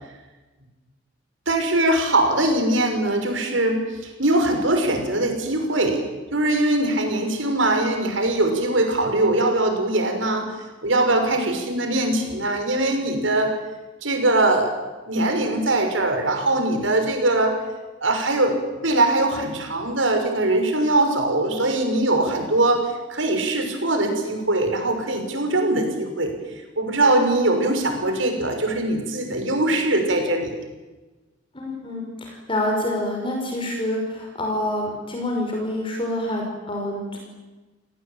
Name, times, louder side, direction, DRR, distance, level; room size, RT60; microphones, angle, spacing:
voice 1, 1.5-6.0 6.3-10.4 10.8-13.5 14.0-14.8 15.1-17.6 18.0-22.8 23.1-26.3 26.8-30.6, right 2 dB, 85° right, 4 dB, 6.3 m, -21 dB
voice 2, 31.5-37.2, left 1 dB, 25° left, 1 dB, 5.5 m, -27 dB
30.0 x 18.5 x 9.2 m, 1.2 s
head